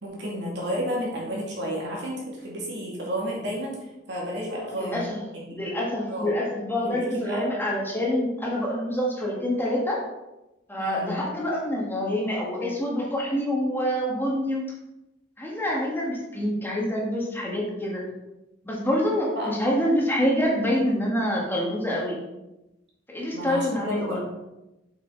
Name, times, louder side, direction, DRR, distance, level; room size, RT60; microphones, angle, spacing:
voice 1, 0.0-3.8 4.1-5.1 5.3-5.6 6.1-6.4 6.8-7.4 10.8-11.2 19.3-19.7 23.3-24.2, equal, 65° right, -3 dB, 2.5 m, -31 dB
voice 2, 4.7-5.2 5.5-10.0 10.7-14.7 15.4-18.1 18.6-22.2 23.1-24.2, equal, 10° left, -3 dB, 1.8 m, -26 dB
7.7 x 6.1 x 4.0 m, 0.96 s
head